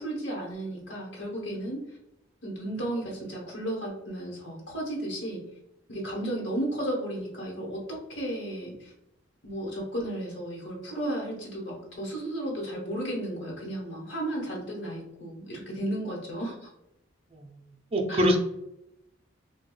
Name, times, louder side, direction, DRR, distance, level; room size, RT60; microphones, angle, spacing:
voice 1, 0.0-1.8 2.4-5.4 5.9-8.9 9.4-16.7 18.1-18.3, right 1 dB, 65° left, -4 dB, 1.1 m, -34 dB
voice 2, 17.9-18.4, equal, 30° right, 2 dB, 0.5 m, -24 dB
4.6 x 2.2 x 2.2 m, 0.85 s
head